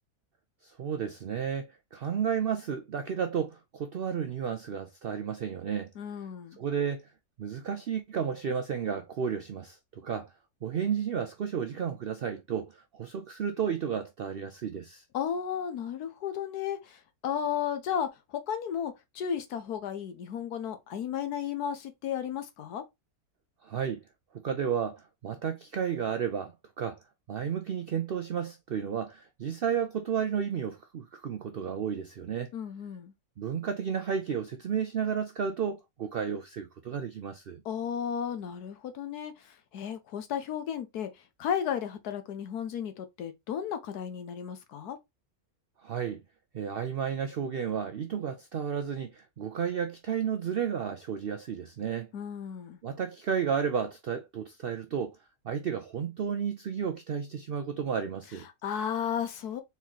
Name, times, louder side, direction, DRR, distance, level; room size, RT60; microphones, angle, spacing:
voice 1, 0.6-5.9 6.6-7.1 7.4-10.3 10.6-15.0 23.6-24.0 24.4-27.0 27.3-32.5 33.4-37.6 45.8-46.2 46.5-52.1 52.8-55.2 55.4-58.5, right 7 dB, 75° right, 0.5 m, -32 dB
voice 2, 6.0-6.6 15.1-22.8 32.5-33.1 37.6-41.1 41.4-45.0 52.1-52.8 58.6-59.6, left 8 dB, 80° left, 1.4 m, -34 dB
4.4 x 3.8 x 2.9 m
omnidirectional pair, 1.6 m